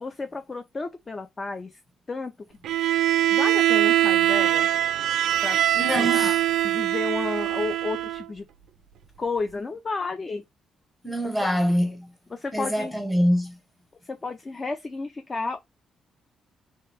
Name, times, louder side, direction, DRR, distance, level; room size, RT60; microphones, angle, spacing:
voice 1, 0.0-1.7 2.1-2.3 3.3-4.7 5.4-5.6 6.0-6.3 6.6-8.4 9.2-10.4 12.3-12.9 14.1-15.6, left 3 dB, 20° left, 0.4 m, -32 dB
Bowed string instrument, 2.6-8.3, right 12 dB, 75° right, 0.4 m, -22 dB
voice 2, 5.7-6.4 11.0-12.1 12.5-13.6, equal, 5° left, 0.9 m, -24 dB
3.2 x 2.9 x 3.3 m
cardioid pair, 165°, 0 cm